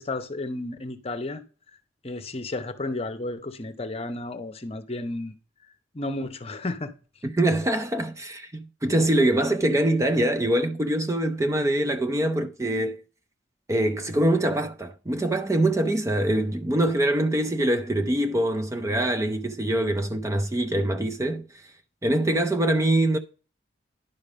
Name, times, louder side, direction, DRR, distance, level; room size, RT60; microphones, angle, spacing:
voice 1, 0.0-1.4 2.0-5.3 5.9-6.9, left 2 dB, 35° left, 0.9 m, -32 dB
voice 2, 7.2-13.0 13.7-21.6 22.0-23.2, right 1 dB, 15° right, 0.5 m, -24 dB
10.5 x 5.2 x 5.1 m
head